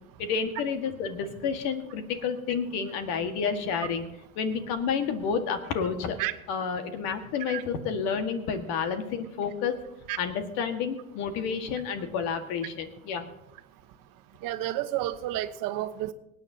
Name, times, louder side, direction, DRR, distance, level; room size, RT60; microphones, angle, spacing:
voice 1, 0.2-4.1 4.4-6.2 6.5-9.8 10.2-13.3, left 6 dB, 60° left, 8 dB, 1.8 m, -30 dB
voice 2, 14.4-16.1, right 14 dB, 50° right, 10 dB, 1.2 m, -31 dB
25.5 x 9.1 x 2.9 m, 0.83 s
hypercardioid pair, 80°, 42 cm